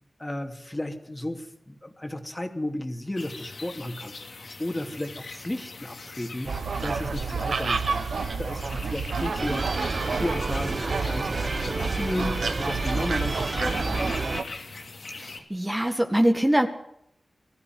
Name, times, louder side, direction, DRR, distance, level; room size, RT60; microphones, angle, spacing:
voice 1, 0.2-14.0, left 1 dB, 25° left, 5 dB, 2.8 m, -34 dB
sound 1, 3.2-15.4, left 3 dB, 80° left, 2.9 m, -41 dB
sound 2, 6.5-14.4, right 5 dB, 90° right, 1.0 m, -29 dB
sound 3, 9.4-14.4, right 3 dB, 55° right, 1.4 m, -31 dB
voice 2, 15.1-16.7, right 1 dB, 15° right, 5 dB, 1.7 m, -23 dB
20.0 x 14.0 x 9.5 m, 0.77 s
cardioid pair, 45°, 0 cm